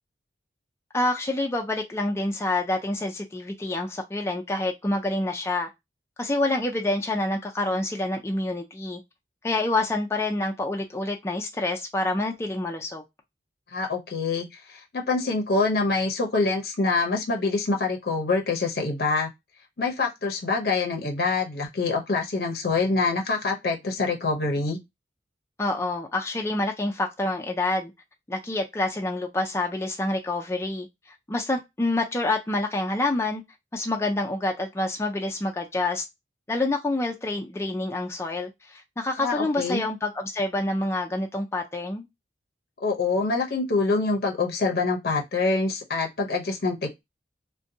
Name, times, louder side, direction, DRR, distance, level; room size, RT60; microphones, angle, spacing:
voice 1, 0.9-5.7 6.2-9.0 9.4-13.0 25.6-27.9 28.3-30.9 31.3-33.4 33.7-36.0 36.5-42.1, left 2 dB, 15° left, 0.4 m, -27 dB
voice 2, 13.7-19.3 19.8-24.8 39.2-39.8 42.8-47.0, left 3 dB, 60° left, 0.6 m, -25 dB
2.5 x 2.1 x 2.6 m
head